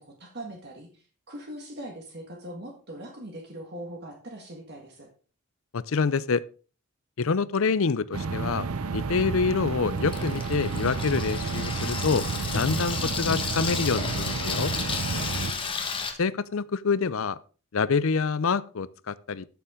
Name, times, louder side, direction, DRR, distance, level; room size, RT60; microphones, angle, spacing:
voice 1, 0.0-5.1 15.1-15.8, right 1 dB, 50° right, 1.7 m, -42 dB
voice 2, 5.7-6.4 7.2-8.7 8.9-12.2 12.5-14.7 16.2-17.4 17.7-19.5, left 5 dB, 70° left, 0.5 m, -26 dB
sound 1, 8.1-15.5, right 4 dB, 85° right, 0.7 m, -31 dB
Water tap faucet / Sink (filling or washing), 9.0-16.1, left 5 dB, 25° left, 1.3 m, -33 dB
sound 2, 11.3-11.6 12.1-12.2 12.5-13.0 13.3-13.7 14.0-14.4 14.8-15.2 15.5-15.9 16.3-16.4, left 1 dB, 90° left, 2.3 m, -39 dB
13.0 x 7.0 x 3.7 m
head